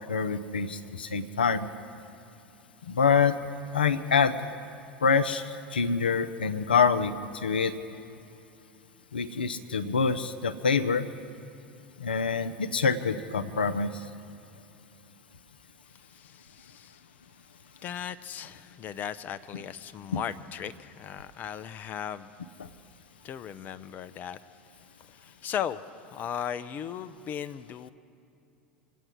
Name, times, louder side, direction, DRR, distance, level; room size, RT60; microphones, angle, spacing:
voice 1, 0.1-1.7 2.9-3.4 3.7-4.3 5.0-7.1 7.4-7.7 9.1-11.1 12.0-13.9, left 5 dB, 80° left, 8 dB, 0.6 m, -25 dB
voice 2, 16.0-17.0 17.8-22.3 23.2-24.4 25.0-25.8 26.1-27.9, left 9 dB, 35° left, 12 dB, 0.6 m, -37 dB
25.0 x 9.2 x 6.2 m, 2.7 s
figure-of-eight pair, 80°, 5 cm